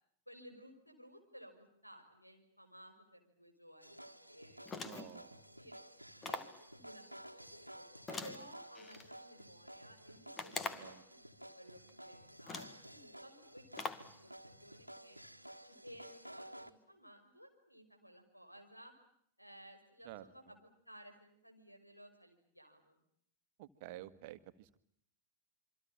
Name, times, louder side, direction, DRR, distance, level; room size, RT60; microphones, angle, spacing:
voice 1, 0.3-5.0 5.6-5.7 6.3-7.9 8.2-13.9 14.2-15.2 15.6-18.9 19.4-23.0, equal, 90° left, 5 dB, 5.7 m, -57 dB
sound 1, 3.8-16.7, right 1 dB, 90° right, 1.7 m, -54 dB
sound 2, 4.6-5.2 6.2-6.6 8.1-9.1 10.4-11.0 11.9-12.0 12.4-12.8 13.8-14.1, left 4 dB, 20° left, 2.0 m, -43 dB
voice 2, 4.7-5.4 10.7-11.0 20.0-20.2 23.6-24.8, right 15 dB, 50° right, 12 dB, 1.7 m, -51 dB
27.5 x 24.5 x 8.8 m, 0.68 s
figure-of-eight pair, 90°, 0 cm